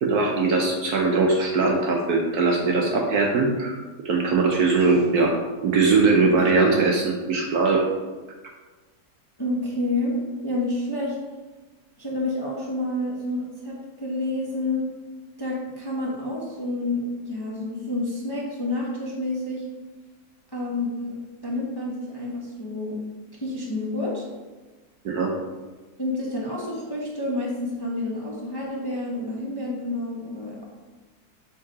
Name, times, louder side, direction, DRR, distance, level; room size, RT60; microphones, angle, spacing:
voice 1, 0.0-3.8 4.0-5.3 5.6-7.8 25.0-25.3, right 3 dB, 60° right, 0 dB, 1.2 m, -21 dB
voice 2, 9.4-11.1 12.0-14.9 15.4-19.6 20.5-21.2 21.4-23.0 23.4-24.3 26.0-30.7, left 2 dB, 15° left, -4 dB, 0.9 m, -29 dB
7.4 x 3.8 x 4.8 m, 1.3 s
omnidirectional pair, 2.1 m